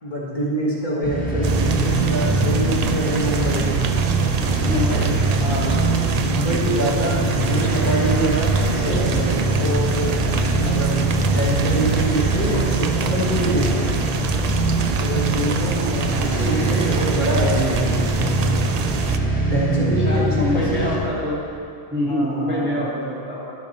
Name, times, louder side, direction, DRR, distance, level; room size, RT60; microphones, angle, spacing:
voice 1, 0.0-3.6 5.0-5.1 5.4-10.2 10.6-13.8 15.0-17.9 19.4-20.9 22.1-22.8, right 1 dB, 45° left, -6 dB, 1.7 m, -25 dB
sound 1, 1.0-20.9, right 1 dB, 10° left, 1.1 m, -23 dB
sound 2, 1.4-19.2, right 7 dB, 55° right, 0.4 m, -25 dB
voice 2, 4.7-5.5 6.5-6.6 16.1-16.3 19.5-21.4 21.9-23.5, left 1 dB, 10° right, -7 dB, 1.4 m, -25 dB
12.0 x 5.9 x 4.2 m, 2.4 s
omnidirectional pair, 1.1 m